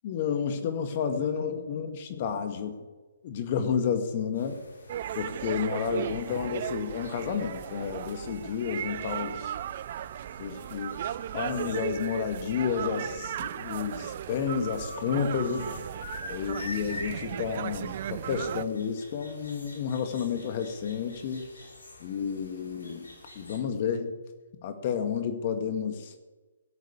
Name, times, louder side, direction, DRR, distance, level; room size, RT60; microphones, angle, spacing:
voice 1, 0.0-2.7 3.2-4.6 5.1-9.5 10.4-15.8 16.3-21.5 22.0-23.1 23.3-24.1 24.6-26.1, left 7 dB, 40° left, 7 dB, 1.9 m, -31 dB
sound 1, 4.3-23.6, left 2 dB, 75° left, 5.1 m, -48 dB
sound 2, 4.9-18.6, right 11 dB, 45° right, 0.4 m, -36 dB
16.5 x 8.3 x 8.3 m, 1.2 s
hypercardioid pair, 140°, 0 cm